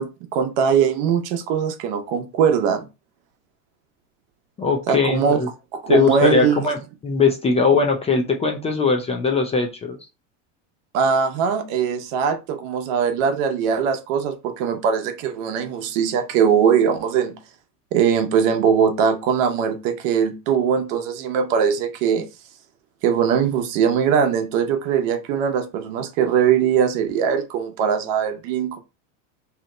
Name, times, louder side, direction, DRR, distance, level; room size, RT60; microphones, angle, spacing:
voice 1, 0.0-2.9 4.9-5.4 5.7-6.7 10.9-17.4 17.9-22.3 23.0-28.8, right 7 dB, 70° right, 0.8 m, -21 dB
voice 2, 4.6-5.5 5.9-10.0, left 5 dB, 15° left, 0.3 m, -20 dB
2.9 x 2.0 x 3.7 m
supercardioid pair, 125°, 39 cm